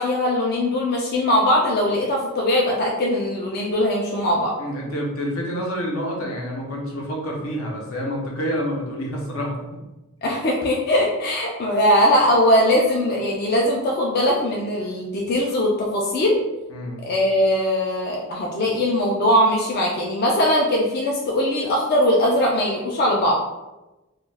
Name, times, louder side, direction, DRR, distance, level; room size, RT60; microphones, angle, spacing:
voice 1, 0.0-4.5 10.2-16.4 17.1-23.3, left 1 dB, 50° left, -2 dB, 0.4 m, -20 dB
voice 2, 4.6-9.8 16.7-17.0, equal, 75° left, -2 dB, 0.7 m, -28 dB
2.3 x 2.2 x 3.2 m, 1.0 s
head